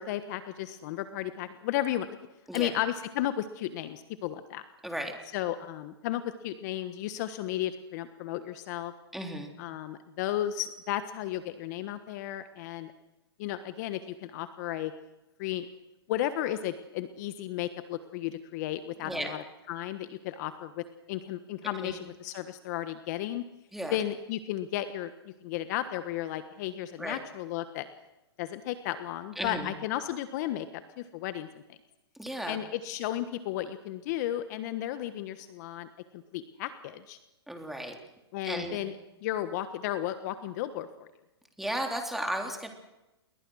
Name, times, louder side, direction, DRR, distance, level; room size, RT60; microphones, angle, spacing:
voice 1, 0.0-2.1 2.5-4.6 5.3-8.9 9.6-12.9 13.4-14.9 15.4-15.7 16.1-23.4 23.9-25.1 25.4-27.9 28.4-30.7 31.0-31.8 32.5-35.9 36.3-37.2 38.3-38.9 39.2-41.1, left 12 dB, 40° left, 11 dB, 1.3 m, -34 dB
voice 2, 9.1-9.5 19.0-19.3 21.6-22.0 23.7-24.0 27.0-27.2 29.4-29.7 32.2-32.6 37.5-38.0 38.4-38.8 41.6-42.7, right 1 dB, ahead, 3 dB, 3.5 m, -34 dB
29.0 x 21.5 x 6.4 m, 0.99 s
hypercardioid pair, 145°, 14 cm